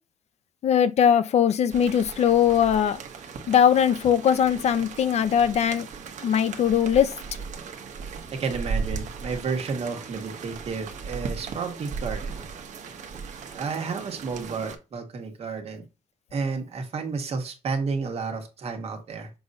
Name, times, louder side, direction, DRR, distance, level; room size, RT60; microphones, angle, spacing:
voice 1, 0.6-3.0 3.5-5.9 6.2-7.1, left 8 dB, 55° left, 0.5 m, -20 dB
sound 1, 1.7-14.8, right 5 dB, 65° right, 1.0 m, -37 dB
voice 2, 8.4-12.5 12.9-13.0 13.5-15.8 16.3-19.3, right 4 dB, 50° right, 1.4 m, -31 dB
6.9 x 2.6 x 5.3 m
wide cardioid pair, 180°, 13 cm